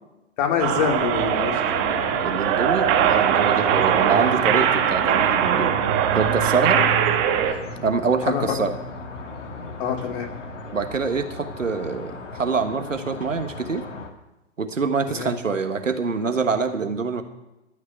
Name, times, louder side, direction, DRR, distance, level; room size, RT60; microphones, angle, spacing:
voice 1, 0.4-2.1 6.8-6.9 8.2-8.4 9.8-10.3 15.1-15.3, left 8 dB, 45° left, 2 dB, 2.8 m, -26 dB
sound 1, 0.6-7.5, right 9 dB, 30° right, 1.4 m, -21 dB
sound 2, 2.0-14.1, left 1 dB, 75° left, 1.9 m, -35 dB
voice 2, 2.2-5.8 6.1-6.8 7.8-8.7 10.7-13.8 14.6-17.2, right 5 dB, 90° right, 8 dB, 1.4 m, -25 dB
12.5 x 6.0 x 8.7 m, 0.99 s
figure-of-eight pair, 120°, 37 cm